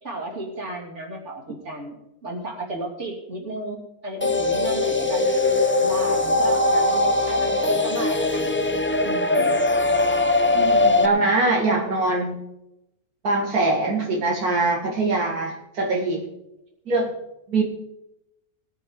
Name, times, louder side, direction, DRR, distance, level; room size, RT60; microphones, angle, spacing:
voice 1, 0.0-5.2 5.8-8.5 9.0-9.6 10.5-11.3 11.8-12.0, right 2 dB, 50° right, -1 dB, 3.3 m, -34 dB
sound 1, 4.2-11.1, left 2 dB, 20° left, 0.3 m, -21 dB
voice 2, 10.8-12.4 13.2-16.3 16.9-17.1 17.5-17.6, right 2 dB, 85° right, -1 dB, 2.4 m, -22 dB
20.5 x 9.7 x 3.7 m, 0.87 s
omnidirectional pair, 1.6 m